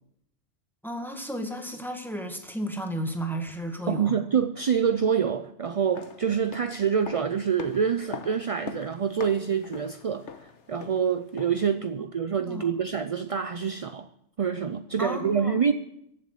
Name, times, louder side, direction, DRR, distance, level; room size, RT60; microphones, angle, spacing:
voice 1, 0.8-4.2 12.5-12.7 15.0-15.6, equal, ahead, 4 dB, 1.8 m, -33 dB
voice 2, 3.9-14.1 14.4-15.7, right 7 dB, 45° right, 10 dB, 0.4 m, -26 dB
sound 1, 5.7-11.7 12.0-12.1, left 6 dB, 85° left, 1.4 m, -43 dB
15.5 x 7.4 x 8.2 m, 0.77 s
omnidirectional pair, 1.2 m